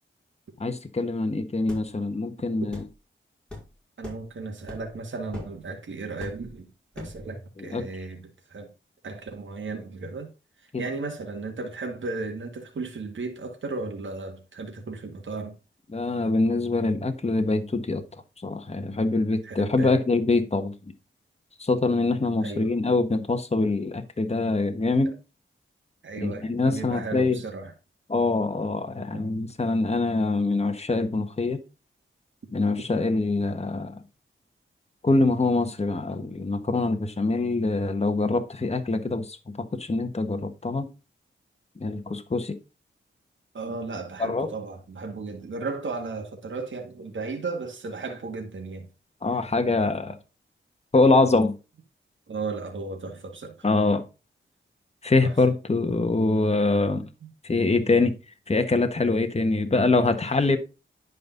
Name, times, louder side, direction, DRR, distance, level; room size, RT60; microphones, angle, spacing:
voice 1, 0.6-2.8 7.6-7.9 10.7-10.8 15.9-18.0 18.4-20.7 21.6-25.1 26.2-27.4 28.1-31.6 32.5-34.0 35.0-40.9 41.8-42.6 44.2-44.5 49.2-50.2 50.9-51.6 53.6-54.0 55.0-57.0 57.4-58.1 58.5-60.6, left 3 dB, 30° left, 1.4 m, -24 dB
sound 1, 1.7-1.9 2.7-2.9 3.5-3.7 4.0-4.3 4.7-4.9 5.3-5.6 6.2-6.5 6.9-7.2, left 2 dB, 5° left, 5.4 m, -39 dB
voice 2, 4.0-6.7 7.0-8.7 9.0-10.3 10.8-15.6 19.4-20.0 22.4-22.8 26.0-27.7 29.1-29.2 43.5-48.9 52.3-53.7 55.2-55.4 57.2-57.3, right 3 dB, 70° right, 2.0 m, -35 dB
11.0 x 5.4 x 3.9 m
cardioid pair, 65°, 21 cm